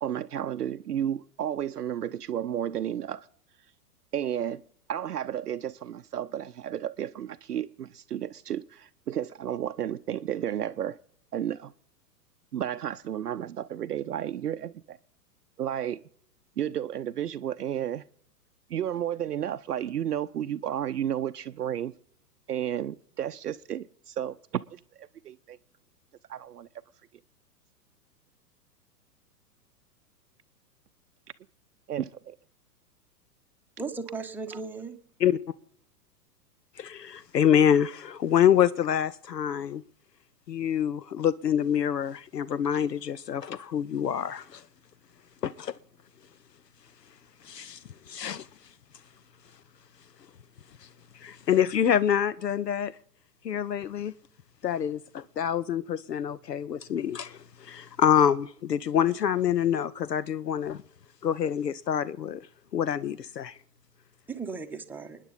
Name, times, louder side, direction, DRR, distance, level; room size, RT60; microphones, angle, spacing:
voice 1, 0.0-3.3 4.1-4.6 4.9-11.0 11.3-11.7 12.5-15.0 15.6-16.0 16.6-18.0 18.7-21.9 22.5-25.6 26.3-26.7 31.9-32.4, right 10 dB, 70° right, 0.6 m, -32 dB
voice 2, 33.8-34.9 64.3-65.2, right 4 dB, 5° right, 0.9 m, -36 dB
voice 3, 36.8-39.8 40.5-44.6 45.4-45.7 47.4-48.5 50.8-50.9 51.1-52.9 53.4-54.1 54.6-60.8 61.2-62.5 62.7-63.6, left 9 dB, 80° left, 0.6 m, -26 dB
29.0 x 9.9 x 4.1 m
figure-of-eight pair, 105°, 48 cm